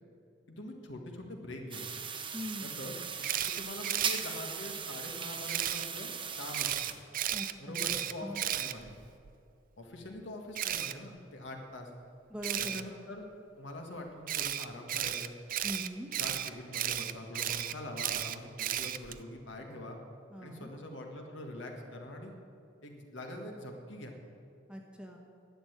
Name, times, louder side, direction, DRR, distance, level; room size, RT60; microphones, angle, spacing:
voice 1, 0.5-2.0 2.6-2.9 3.5-6.9 7.6-8.9 9.8-11.9 12.6-13.2 13.5-15.4 16.2-20.0 20.4-22.3 22.8-24.1, left 1 dB, 65° left, 2 dB, 1.7 m, -44 dB
sound 1, 1.7-6.9, right 6 dB, 25° right, 0.9 m, -38 dB
voice 2, 2.3-2.7 7.3-7.8 8.2-8.4 12.3-12.9 15.6-16.1 20.3-20.7 24.7-25.2, equal, 5° right, 1 dB, 1.2 m, -41 dB
Camera, 3.2-4.2 5.5-5.9 6.5-9.3 10.6-10.9 12.4-12.8 14.3-19.2, right 11 dB, 45° right, 0.4 m, -34 dB
11.0 x 8.1 x 9.1 m, 2.5 s
head